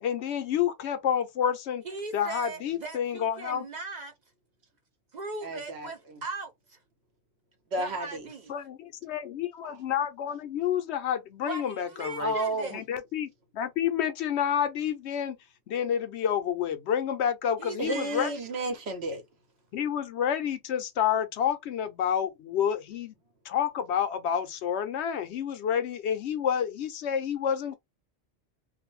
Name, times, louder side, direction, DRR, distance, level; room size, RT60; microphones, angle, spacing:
voice 1, 0.0-1.8 2.1-3.6 8.5-12.3 12.7-15.4 15.7-18.3 19.7-23.2 23.4-27.8, left 9 dB, 80° left, 0.9 m, -29 dB
voice 2, 1.8-4.1 5.1-6.8 7.8-8.5 11.5-12.8 17.6-18.3, right 3 dB, 55° right, 0.5 m, -39 dB
voice 3, 5.4-5.9 7.7-8.2 9.6-9.7 12.2-12.8 17.8-19.2, right 2 dB, 75° right, 1.1 m, -32 dB
2.6 x 2.1 x 3.0 m
omnidirectional pair, 1.1 m